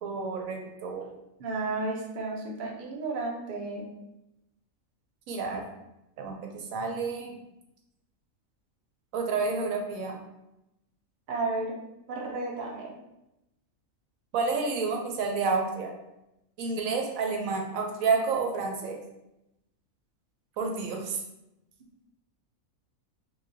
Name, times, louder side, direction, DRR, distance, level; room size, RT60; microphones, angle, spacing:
voice 1, 0.0-1.1 5.3-5.7 6.2-7.3 9.1-10.2 14.3-15.9 16.6-19.0 20.6-21.2, right 4 dB, 80° right, 2 dB, 1.0 m, -30 dB
voice 2, 1.4-3.9 11.3-11.8 12.1-13.0, right 3 dB, 45° right, -1 dB, 0.7 m, -32 dB
4.7 x 2.3 x 2.6 m, 0.89 s
omnidirectional pair, 1.4 m